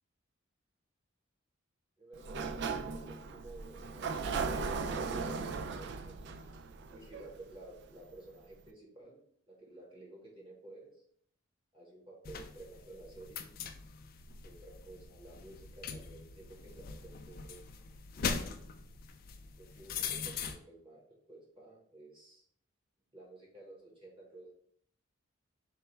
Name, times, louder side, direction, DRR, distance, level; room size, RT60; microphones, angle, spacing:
voice 1, 2.0-6.3 6.9-9.2 9.5-10.9 11.7-13.4 14.4-17.7 19.6-22.4 23.1-24.5, right 2 dB, 25° right, -2 dB, 1.0 m, -53 dB
Sliding door, 2.1-7.8, right 4 dB, 55° right, 0.3 m, -37 dB
sound 1, 12.2-20.6, left 5 dB, 45° left, 0.4 m, -41 dB
3.9 x 2.3 x 4.3 m, 0.65 s
head